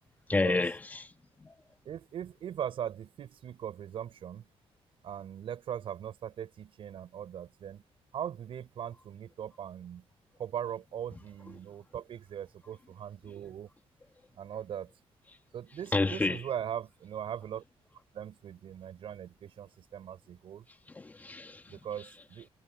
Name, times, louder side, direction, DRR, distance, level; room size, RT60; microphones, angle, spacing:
voice 1, 0.3-1.1 1.4-1.5 15.9-16.4 21.0-21.6, left 3 dB, 15° left, 2.5 m, -29 dB
voice 2, 1.8-4.4 5.0-7.8 8.1-10.0 10.4-13.7 14.4-14.9 15.5-17.6 18.1-20.6 21.7-22.5, right 9 dB, 60° right, 4.9 m, -40 dB
cardioid pair, 165°, 11 cm